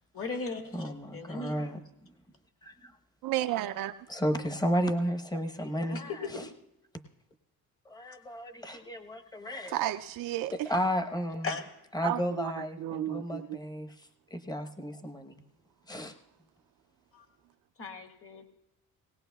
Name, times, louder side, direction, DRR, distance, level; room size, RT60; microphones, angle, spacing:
voice 1, 0.1-1.6 5.9-6.4 11.4-11.6 17.1-17.2 17.8-18.5, left 3 dB, 40° left, 4 dB, 1.6 m, -37 dB
voice 2, 0.7-2.1 2.6-2.9 4.1-6.5 7.9-9.9 10.5-11.5 11.9-15.4 15.9-16.1, equal, 10° left, 6 dB, 0.9 m, -33 dB
voice 3, 3.2-3.9 9.7-10.5 12.0-12.5 12.8-13.5, right 13 dB, 65° right, 8 dB, 0.5 m, -32 dB
19.0 x 18.0 x 2.3 m, 0.86 s
cardioid pair, 100°, 36 cm